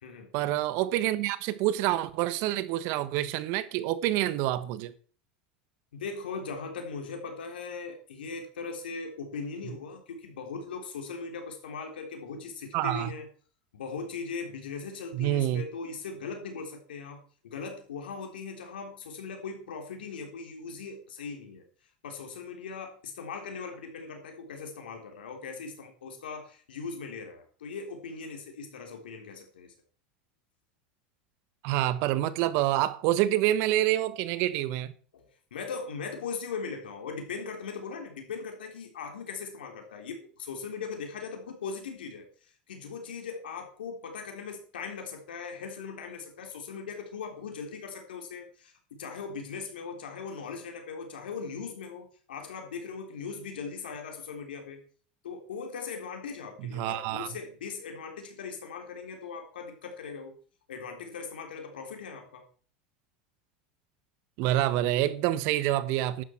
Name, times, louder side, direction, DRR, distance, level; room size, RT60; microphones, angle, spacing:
voice 1, 0.3-4.9 12.7-13.1 15.1-15.6 31.6-34.9 56.6-57.3 64.4-66.2, right 14 dB, 60° right, 1.3 m, -27 dB
voice 2, 5.9-13.3 13.7-21.6 22.0-29.7 35.1-35.2 35.5-42.3 42.7-54.8 55.2-60.3 60.7-62.4, left 5 dB, 90° left, 3.5 m, -39 dB
12.0 x 9.8 x 4.6 m
hypercardioid pair, 100°, 5 cm